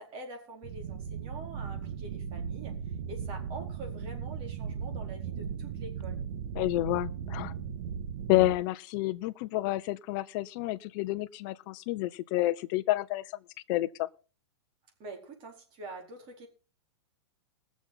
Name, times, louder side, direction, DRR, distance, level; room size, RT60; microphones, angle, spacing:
voice 1, 0.0-2.8 3.1-6.2 15.0-16.5, right 2 dB, 35° right, 4.2 m, -45 dB
sound 1, 0.6-8.5, right 7 dB, 55° right, 1.8 m, -37 dB
voice 2, 6.6-7.5 8.3-13.2 13.7-14.1, left 18 dB, 45° left, 0.7 m, -29 dB
21.0 x 7.1 x 4.1 m
hypercardioid pair, 130°, 15 cm